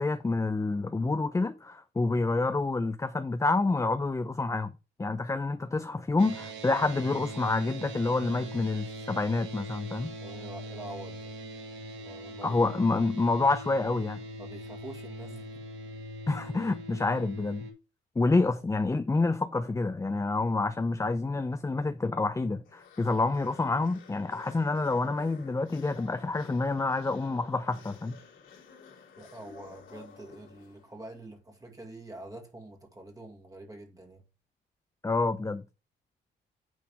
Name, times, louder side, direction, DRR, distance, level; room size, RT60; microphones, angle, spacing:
voice 1, 0.0-4.7 5.0-10.1 12.4-14.2 16.3-17.7 18.2-28.2 35.0-35.6, left 3 dB, 15° left, 0.6 m, -28 dB
sound 1, 6.2-17.7, right 1 dB, 70° right, 2.5 m, -42 dB
voice 2, 10.2-11.3 11.9-12.6 14.4-15.6 29.2-34.2, right 2 dB, 15° right, 1.9 m, -46 dB
sound 2, 22.6-31.1, left 6 dB, 75° left, 3.2 m, -53 dB
9.3 x 4.0 x 4.7 m
cardioid pair, 90°, 20 cm